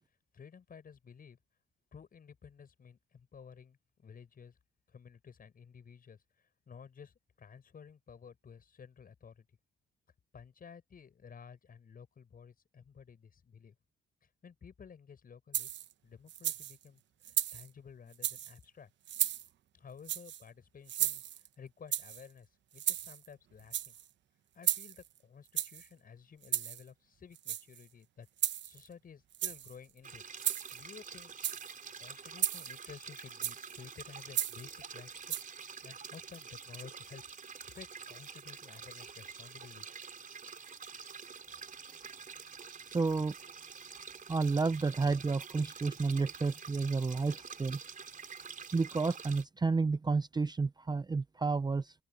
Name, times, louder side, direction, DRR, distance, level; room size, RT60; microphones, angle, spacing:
voice 1, 0.3-1.4 1.9-4.6 4.9-6.2 6.7-9.5 10.3-13.7 14.2-15.7 16.0-18.9 19.7-21.2 21.6-24.0 24.5-28.3 28.6-30.2 30.7-31.3 32.0-35.4 35.8-39.9, left 6 dB, 45° left, 7.6 m, -53 dB
sound 1, 15.5-15.9 16.3-16.8 17.2-17.7 18.1-18.5 19.1-19.5 20.0-20.4 20.9-21.5 21.9-22.2 22.8-23.3 23.6-24.0 24.6-25.1 25.6-25.9 26.4-26.8 27.4-27.8 28.4-28.9 29.3-29.7 30.4-30.8 31.3-31.7 32.4-32.8 33.4-33.7 34.3-34.7 35.3-35.4, right 11 dB, 65° right, 0.9 m, -34 dB
sound 2, 30.0-49.4, right 6 dB, 40° right, 4.6 m, -48 dB
voice 2, 42.9-43.3 44.3-47.8 48.7-51.9, right 4 dB, 20° right, 0.6 m, -31 dB
open air
cardioid pair, 90°, 20 cm